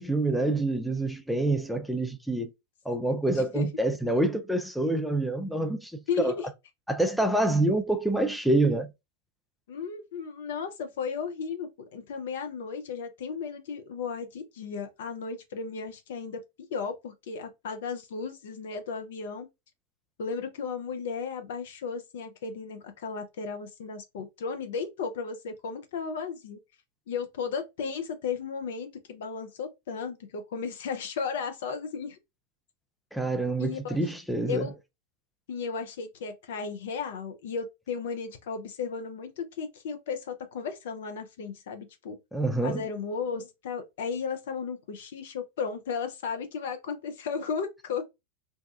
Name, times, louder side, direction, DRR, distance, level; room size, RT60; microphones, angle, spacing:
voice 1, 0.0-2.5 2.9-6.3 6.9-8.9 33.1-34.7 42.3-42.8, right 2 dB, ahead, 0.4 m, -27 dB
voice 2, 3.3-3.7 6.1-6.4 9.7-16.4 16.7-19.5 20.2-26.6 27.1-32.2 33.6-34.0 34.5-34.7 35.5-42.2 42.6-48.0, left 5 dB, 55° left, 0.6 m, -34 dB
2.7 x 2.2 x 2.4 m
figure-of-eight pair, 90°, 0 cm